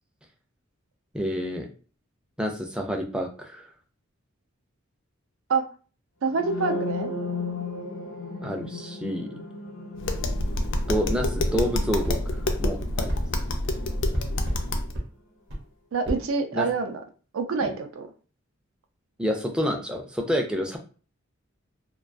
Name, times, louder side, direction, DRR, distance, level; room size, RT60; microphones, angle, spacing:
voice 1, 1.1-1.7 2.4-3.7 8.4-9.4 10.9-13.1 16.1-16.2 16.5-16.7 17.6-17.7 19.2-20.8, equal, 5° right, 2 dB, 0.3 m, -29 dB
voice 2, 6.2-7.1 15.9-16.9 17.3-18.1, right 4 dB, 80° right, 6 dB, 0.4 m, -26 dB
sound 1, 6.3-14.1, left 2 dB, 80° left, 0.9 m, -36 dB
Tap, 10.0-14.9, left 1 dB, 65° left, 0.4 m, -27 dB
sound 2, 12.0-12.2 13.1-13.2 14.1-14.6 14.9-15.1 15.5-15.6 16.1-16.2, equal, 60° right, 0.8 m, -31 dB
2.3 x 2.2 x 2.4 m, 0.39 s
head